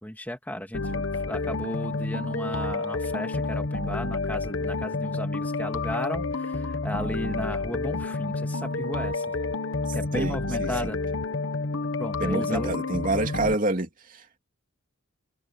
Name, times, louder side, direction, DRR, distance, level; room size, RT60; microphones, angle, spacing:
voice 1, 0.0-9.2 9.9-11.0 12.0-12.8, left 1 dB, 10° left, 2.0 m, -34 dB
sound 1, 0.7-13.6, left 3 dB, 60° left, 1.2 m, -29 dB
voice 2, 9.9-10.9 12.2-14.2, right 2 dB, 40° right, 2.9 m, -28 dB
head